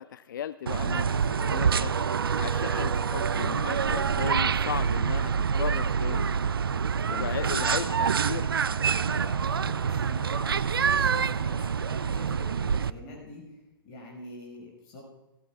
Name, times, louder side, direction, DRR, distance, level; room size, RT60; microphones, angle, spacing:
voice 1, 0.0-1.9 2.4-6.3 7.1-8.5, left 9 dB, 60° left, 15 dB, 0.4 m, -36 dB
sound 1, 0.7-12.9, right 6 dB, 75° right, 0.4 m, -26 dB
sound 2, 1.8-13.2, right 2 dB, 10° left, 2.8 m, -49 dB
sound 3, 7.0-12.9, equal, 90° left, 3.9 m, -55 dB
voice 2, 7.0-8.4 9.1-15.0, left 2 dB, 35° left, -1 dB, 5.4 m, -44 dB
18.5 x 17.5 x 2.4 m, 1.1 s
figure-of-eight pair, 120°, 12 cm